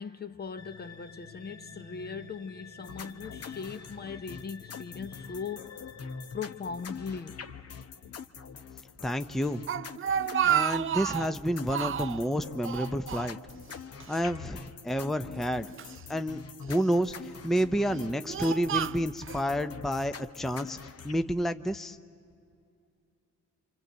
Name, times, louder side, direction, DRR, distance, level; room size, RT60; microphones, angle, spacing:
voice 1, 0.0-5.8 6.3-7.5 13.8-13.9, left 5 dB, 35° left, 0.8 m, -39 dB
sound 1, 0.6-8.1, left 5 dB, 75° left, 2.0 m, -51 dB
sound 2, 2.8-21.1, left 6 dB, 55° left, 1.1 m, -44 dB
voice 2, 9.0-9.6 10.4-13.4 14.1-15.7 16.1-16.4 16.7-20.8 21.0-22.0, equal, ahead, 0.7 m, -29 dB
Speech, 9.4-11.3 11.7-12.2 12.6-13.7 14.0-14.2 15.0-16.0 16.7-17.1 17.7-19.4, right 10 dB, 45° right, 0.6 m, -31 dB
26.5 x 26.0 x 8.1 m
cardioid pair, 90°, 30 cm